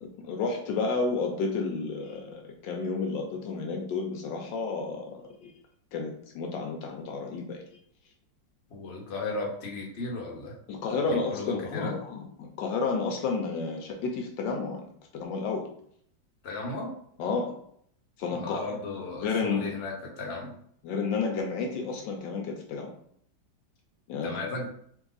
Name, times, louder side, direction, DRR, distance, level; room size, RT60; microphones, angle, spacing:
voice 1, 0.0-5.5 5.9-7.6 10.7-14.8 15.1-15.7 17.2-17.5 18.2-18.6 19.2-19.7 20.8-22.9 24.1-24.3, left 4 dB, 75° left, 2 dB, 1.3 m, -31 dB
voice 2, 8.7-10.5 11.1-12.0 16.4-16.9 18.3-20.6 24.2-24.7, left 3 dB, 45° left, -2 dB, 1.0 m, -35 dB
3.5 x 3.1 x 3.9 m, 0.66 s
omnidirectional pair, 2.1 m